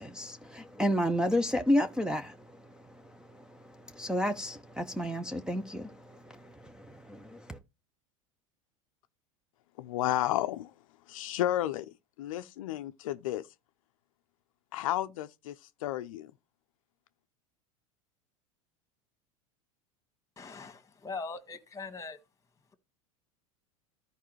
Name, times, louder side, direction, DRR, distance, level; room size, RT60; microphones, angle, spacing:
voice 1, 0.0-3.0 3.3-7.6, left 1 dB, 5° right, 0.7 m, -32 dB
voice 2, 9.8-10.7 11.1-13.5 14.7-16.3, left 13 dB, 75° left, 0.5 m, -32 dB
voice 3, 20.4-22.2, left 4 dB, 20° left, 1.7 m, -41 dB
14.0 x 4.8 x 3.1 m
hypercardioid pair, 95°, 18 cm